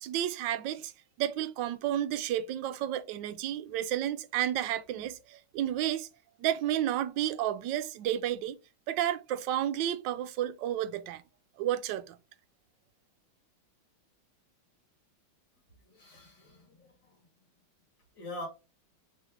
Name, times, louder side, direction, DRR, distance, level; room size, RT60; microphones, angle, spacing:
voice 1, 0.0-0.9 1.2-6.1 6.4-8.6 8.9-11.2 11.6-12.2, right 11 dB, 75° right, 1.1 m, -31 dB
voice 2, 15.9-16.9 18.2-18.5, left 1 dB, 60° left, 2.8 m, -43 dB
4.4 x 3.1 x 3.6 m
omnidirectional pair, 2.2 m